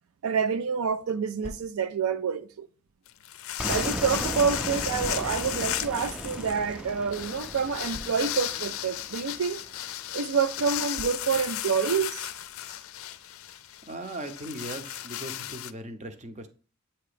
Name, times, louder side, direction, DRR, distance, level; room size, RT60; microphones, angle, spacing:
voice 1, 0.2-2.7 3.7-9.6 10.1-12.3, right 6 dB, 75° right, 0.4 m, -27 dB
sound 1, 1.4-2.1 2.9-3.9 5.0-5.6 6.5-6.6 6.9-7.0 7.9-8.6 9.5-9.7 10.9-11.6, left 2 dB, 30° left, 0.7 m, -45 dB
sound 2, 3.1-15.7, left 12 dB, 70° left, 0.4 m, -35 dB
sound 3, 3.6-9.5, right 1 dB, 5° right, 0.3 m, -37 dB
voice 2, 13.9-16.5, right 1 dB, 30° right, 0.7 m, -38 dB
8.5 x 2.9 x 5.0 m
head